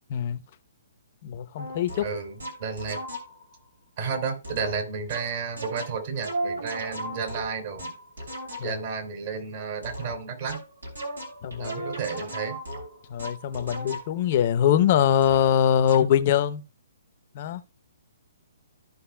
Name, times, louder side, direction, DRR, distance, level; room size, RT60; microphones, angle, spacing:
voice 1, 1.2-2.1 8.6-8.8 11.4-11.9 13.1-16.6 17.3-17.6, left 9 dB, 45° left, 0.7 m, -23 dB
sound 1, 1.6-3.6 4.4-8.9 9.8-14.4 15.2-15.5 15.9-16.2, right 1 dB, 85° right, 2.7 m, -37 dB
voice 2, 2.0-3.0 4.0-7.9 8.6-10.6 11.6-12.6, right 5 dB, 50° right, 2.8 m, -32 dB
14.5 x 5.5 x 2.2 m
figure-of-eight pair, 130°, 0 cm